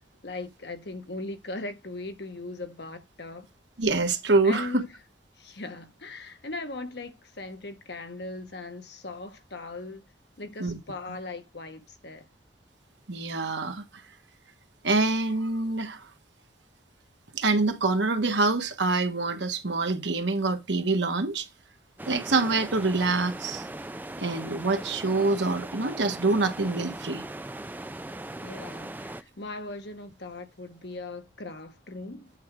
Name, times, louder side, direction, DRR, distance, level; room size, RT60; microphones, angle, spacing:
voice 1, 0.2-3.5 4.4-4.9 5.4-10.0 10.4-12.3 28.4-32.3, left 2 dB, 70° left, 1.3 m, -39 dB
voice 2, 3.8-4.8 10.6-10.8 13.1-13.8 14.8-16.0 17.3-21.5 22.1-23.6 24.2-27.2, right 3 dB, 80° right, 1.3 m, -25 dB
sound 1, 22.0-29.2, right 1 dB, 10° right, 0.4 m, -39 dB
8.6 x 3.7 x 4.8 m
head